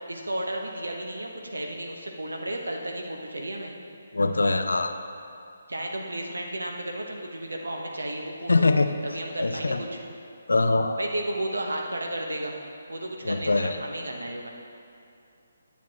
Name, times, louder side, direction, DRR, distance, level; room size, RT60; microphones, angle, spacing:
voice 1, 0.1-3.7 5.7-8.7 9.0-10.0 11.0-12.5 12.9-14.5, right 1 dB, 70° right, 1 dB, 1.1 m, -33 dB
voice 2, 4.1-4.9 8.5-8.9 9.4-9.8 10.5-11.0 13.2-13.8, left 3 dB, 70° left, 8 dB, 0.5 m, -23 dB
10.0 x 8.1 x 3.0 m, 2.5 s
figure-of-eight pair, 145°, 0 cm